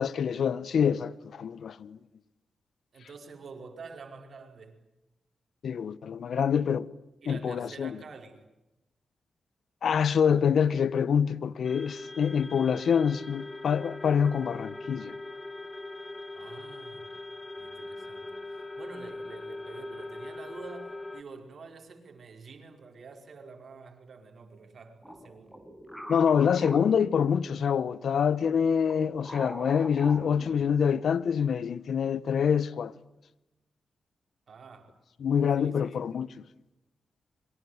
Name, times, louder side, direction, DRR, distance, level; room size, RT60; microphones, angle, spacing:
voice 1, 0.0-2.0 5.6-6.9 7.3-8.0 9.8-15.1 26.1-32.9 35.2-36.3, left 7 dB, 75° left, 1.0 m, -26 dB
voice 2, 2.9-4.8 7.2-8.5 16.3-17.1 17.6-25.6 34.5-35.8, right 4 dB, 65° right, 5.0 m, -48 dB
sound 1, 11.6-21.2, left 2 dB, 25° left, 2.0 m, -41 dB
sound 2, 25.0-27.8 28.4-31.1, equal, 5° left, 5.5 m, -43 dB
26.5 x 23.5 x 9.5 m
supercardioid pair, 50°, 0 cm